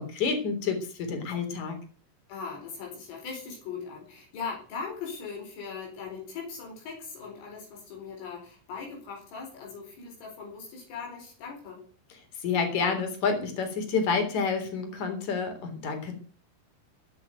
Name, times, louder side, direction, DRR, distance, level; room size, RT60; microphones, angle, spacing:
voice 1, 0.0-1.8 12.4-16.1, left 5 dB, 40° left, 5 dB, 4.5 m, -29 dB
voice 2, 2.3-11.8, left 5 dB, 75° left, 0 dB, 6.9 m, -39 dB
18.5 x 8.0 x 9.3 m, 0.42 s
omnidirectional pair, 6.0 m